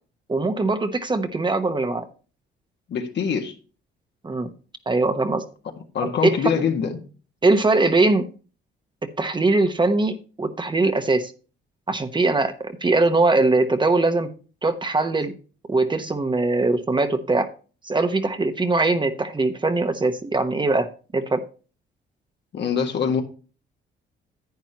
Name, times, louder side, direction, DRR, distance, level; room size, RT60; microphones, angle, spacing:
voice 1, 0.3-2.1 4.2-4.5 4.9-5.4 6.0-6.5 7.4-8.3 9.2-11.3 11.9-14.3 14.6-15.3 15.7-17.5 17.8-20.9 21.1-21.4, right 3 dB, 25° right, 1.0 m, -21 dB
voice 2, 2.9-3.5 5.9-7.0 22.5-23.2, left 7 dB, 60° left, 1.8 m, -24 dB
10.5 x 8.9 x 3.0 m
cardioid pair, 90°, 20 cm